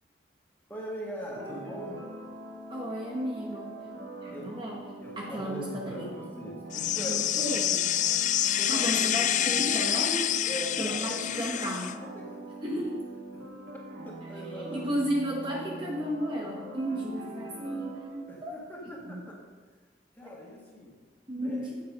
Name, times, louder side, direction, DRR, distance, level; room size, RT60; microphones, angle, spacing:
voice 1, 0.7-2.0 4.3-4.5 5.0-7.5 8.6-9.0 10.5-11.3 12.0-12.8 14.0-15.0 18.3-19.4 20.1-21.0 21.4-21.7, equal, 10° left, -3 dB, 1.9 m, -41 dB
sound 1, 1.3-18.6, right 1 dB, 80° right, 2.1 m, -43 dB
voice 2, 2.7-3.8 4.2-4.8 5.2-6.0 7.1-7.8 8.7-10.3 10.8-12.0 12.6-13.1 14.6-18.6 18.8-19.2 20.3-20.4 21.3-21.8, equal, 25° right, -2 dB, 1.0 m, -33 dB
sound 2, 6.7-11.9, left 11 dB, 45° left, 0.3 m, -27 dB
8.6 x 7.5 x 5.3 m, 1.4 s
head